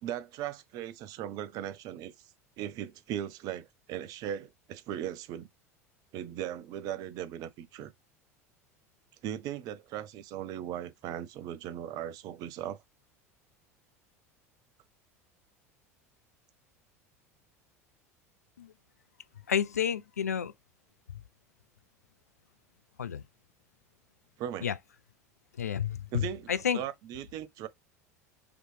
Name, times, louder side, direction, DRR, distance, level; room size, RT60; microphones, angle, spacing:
voice 1, 0.0-2.1 2.6-5.5 6.1-7.9 9.2-12.8 24.4-24.7 26.1-26.5 26.7-27.7, right 10 dB, 50° right, 0.7 m, -38 dB
voice 2, 19.5-20.5 23.0-23.2 24.6-24.8 25.6-26.8, left 8 dB, 85° left, 0.4 m, -30 dB
5.0 x 3.1 x 3.2 m
figure-of-eight pair, 75°, 8 cm